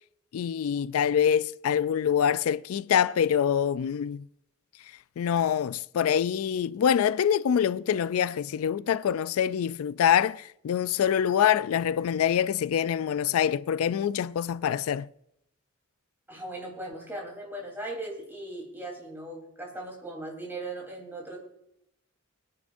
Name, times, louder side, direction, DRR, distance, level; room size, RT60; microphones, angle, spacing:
voice 1, 0.3-4.3 5.2-15.1, left 8 dB, 75° left, 0.3 m, -25 dB
voice 2, 16.3-21.4, right 2 dB, 10° right, 3.5 m, -38 dB
22.5 x 9.7 x 2.6 m
head